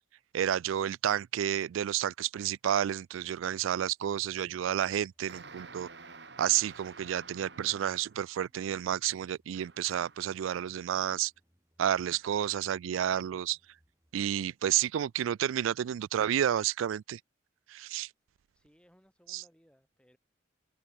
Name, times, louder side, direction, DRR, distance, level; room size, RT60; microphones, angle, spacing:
voice 1, 0.3-5.9 6.4-11.3 11.8-13.6 14.1-17.2 17.7-18.1 19.3-19.4, right 10 dB, 85° right, 0.3 m, -30 dB
sound 1, 4.0-15.7, equal, 15° right, 6.3 m, -74 dB
sound 2, 5.3-8.3 9.5-10.3, right 4 dB, 60° right, 2.8 m, -50 dB
voice 2, 18.5-20.2, equal, 5° left, 7.0 m, -64 dB
head